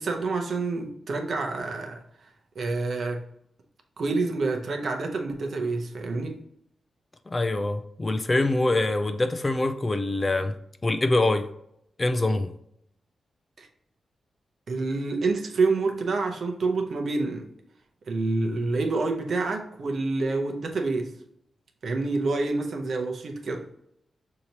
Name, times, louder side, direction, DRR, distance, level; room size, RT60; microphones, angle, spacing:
voice 1, 0.0-2.0 2.5-3.2 4.0-6.4 13.6-13.7 14.7-17.5 18.1-21.1 21.8-23.6, right 3 dB, 60° right, 0.7 m, -27 dB
voice 2, 7.3-10.6 10.8-11.5 12.0-12.5, left 2 dB, 25° left, 0.3 m, -24 dB
6.5 x 2.8 x 2.9 m
wide cardioid pair, 135°, 0 cm